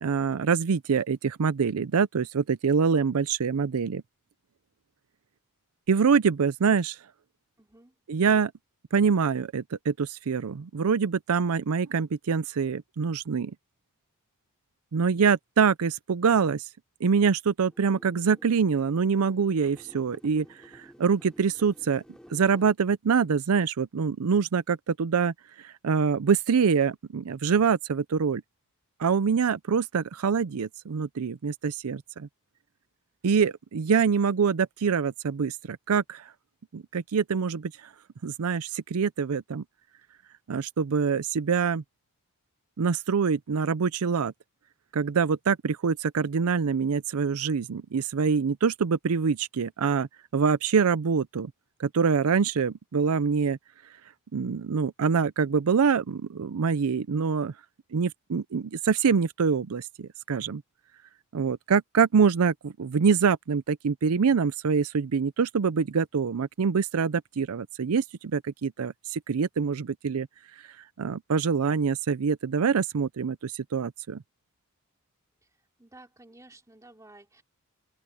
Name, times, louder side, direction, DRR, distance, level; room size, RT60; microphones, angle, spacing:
voice 1, 0.0-4.0 5.9-7.0 8.1-8.5 8.9-13.5 14.9-16.7 17.0-22.0 22.3-28.4 29.0-32.3 33.2-36.3 36.7-37.9 38.2-39.6 40.5-41.8 42.8-44.3 44.9-51.5 51.8-53.6 54.3-57.5 57.9-60.6 61.3-70.3 70.6-74.2, right 6 dB, 70° right, 0.5 m, -25 dB
voice 2, 7.6-7.9 75.8-77.4, right 2 dB, 15° right, 2.9 m, -53 dB
sound 1, 17.7-22.7, equal, 5° left, 2.7 m, -53 dB
open air
head